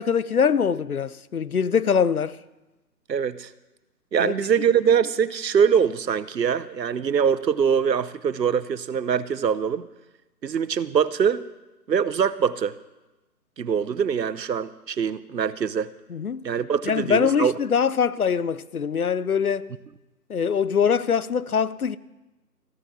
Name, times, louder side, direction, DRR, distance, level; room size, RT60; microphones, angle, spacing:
voice 1, 0.0-2.4 4.2-4.3 16.1-16.5 16.9-19.7 20.3-22.0, left 7 dB, 60° left, 0.6 m, -23 dB
voice 2, 3.1-3.5 4.1-9.9 10.4-11.4 11.9-12.8 13.6-15.9 16.4-17.5, right 7 dB, 85° right, 0.9 m, -23 dB
15.0 x 10.5 x 6.1 m
hypercardioid pair, 180°, 49 cm